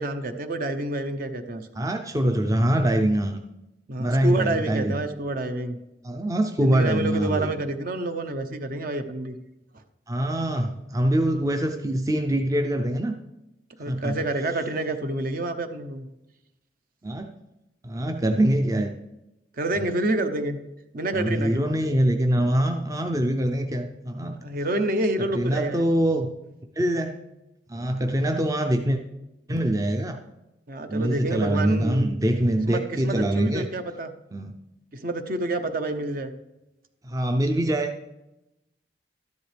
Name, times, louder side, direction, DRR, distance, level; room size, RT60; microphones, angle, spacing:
voice 1, 0.0-1.9 3.9-5.8 6.6-9.4 13.8-16.1 19.6-20.6 20.9-21.6 24.4-25.9 30.7-32.1 32.6-34.1 34.9-36.3, right 2 dB, 50° right, 8 dB, 0.8 m, -28 dB
voice 2, 1.8-3.4 4.0-5.0 6.0-7.5 10.1-13.1 13.9-14.2 17.0-17.3 17.8-18.9 21.1-24.4 25.2-26.3 26.8-27.2 27.7-29.0 29.5-30.2 30.9-33.7 34.3-34.5 37.0-37.9, right 1 dB, 20° right, 5 dB, 0.5 m, -24 dB
12.5 x 11.0 x 3.4 m, 0.96 s
head